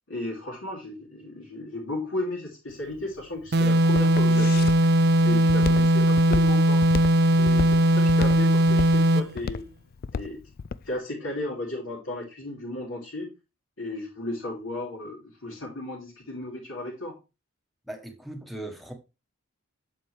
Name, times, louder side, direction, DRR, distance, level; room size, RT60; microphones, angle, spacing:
voice 1, 0.0-4.7 5.2-6.8 7.4-9.7 10.1-10.5 10.8-13.3 13.8-17.2, left 1 dB, 65° left, 2.8 m, -35 dB
Walk footsteps, 2.7-10.9, left 5 dB, 45° left, 0.3 m, -33 dB
sound 1, 3.5-9.3, equal, 45° right, 0.6 m, -19 dB
voice 2, 17.9-18.9, right 1 dB, ahead, 1.3 m, -38 dB
7.6 x 7.5 x 3.2 m
head